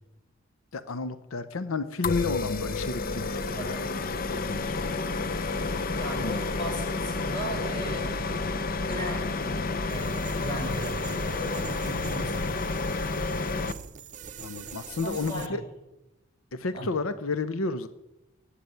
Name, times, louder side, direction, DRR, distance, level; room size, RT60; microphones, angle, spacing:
voice 1, 0.7-3.4 4.3-4.9 6.2-6.5 14.4-15.6 16.5-17.9, left 3 dB, 80° left, 13 dB, 0.7 m, -31 dB
sound 1, 2.0-13.7, left 3 dB, 45° left, 0.7 m, -30 dB
voice 2, 3.3-3.8 5.9-8.3 8.7-9.3 9.9-12.7 15.0-15.6 16.7-16.9, equal, 20° left, -1 dB, 6.2 m, -37 dB
sound 2, 9.9-15.5, right 7 dB, 35° right, 0.8 m, -44 dB
18.5 x 8.4 x 9.3 m, 1.0 s
head